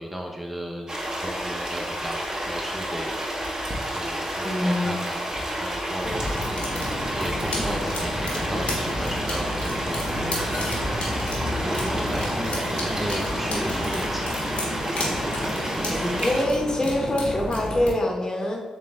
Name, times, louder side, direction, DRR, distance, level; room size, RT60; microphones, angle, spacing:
voice 1, 0.0-3.7 3.9-6.8 7.1-11.3 11.6-14.4 15.7-16.0, equal, 5° right, 0 dB, 0.7 m, -35 dB
sound 1, 0.9-16.5, equal, 30° right, 1.1 m, -30 dB
voice 2, 4.4-5.0 15.9-18.6, left 1 dB, 30° left, 1 dB, 1.0 m, -25 dB
sound 2, 6.0-17.9, left 1 dB, 70° left, 1.5 m, -30 dB
sound 3, 7.5-8.4 9.0-9.1 9.4-9.5 10.2-11.3 12.0-13.2 13.6-13.7 14.8-15.0, left 3 dB, 90° left, 0.6 m, -44 dB
4.1 x 3.2 x 3.7 m, 1.3 s
supercardioid pair, 45°, 2 cm